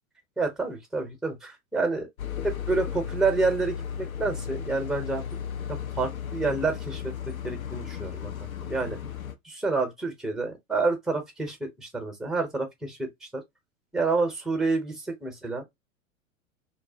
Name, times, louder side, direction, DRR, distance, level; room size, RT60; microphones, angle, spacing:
voice 1, 0.4-2.1 2.4-5.2 5.7-9.0 9.4-13.4 13.9-15.6, right 3 dB, ahead, 0.7 m, -29 dB
sound 1, 2.2-9.4, left 8 dB, 85° left, 0.6 m, -35 dB
2.4 x 2.2 x 2.6 m
figure-of-eight pair, 95°, 40 cm